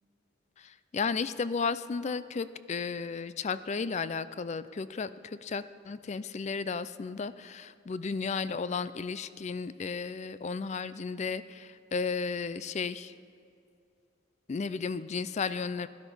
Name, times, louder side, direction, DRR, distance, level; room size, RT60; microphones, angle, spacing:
voice 1, 0.6-13.1 14.5-15.9, left 5 dB, 35° left, 14 dB, 0.4 m, -34 dB
16.5 x 12.0 x 5.4 m, 2.4 s
head